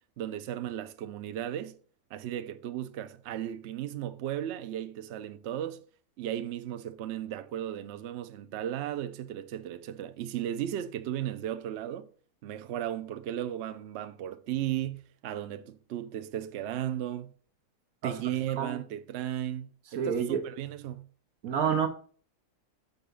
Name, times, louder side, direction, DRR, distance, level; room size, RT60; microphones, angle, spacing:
voice 1, 0.2-1.7 2.1-5.8 6.2-12.1 12.4-17.3 18.0-21.1, right 11 dB, 65° right, 0.8 m, -35 dB
voice 2, 20.0-20.4 21.4-21.9, right 7 dB, 90° right, 1.4 m, -28 dB
5.5 x 4.6 x 5.2 m
omnidirectional pair, 1.5 m